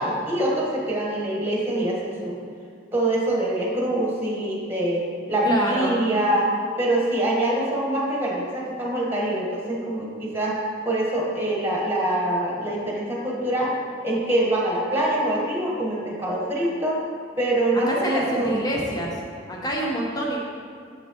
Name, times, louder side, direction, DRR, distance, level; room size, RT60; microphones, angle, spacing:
voice 1, 0.0-2.3 2.9-6.5 6.8-10.5 10.8-13.7 14.0-17.0 17.4-18.5, right 1 dB, 10° right, -4 dB, 1.3 m, -24 dB
voice 2, 5.4-5.9 17.7-19.2 19.5-20.4, equal, 20° left, -3 dB, 1.1 m, -26 dB
7.0 x 6.8 x 3.0 m, 2.3 s
head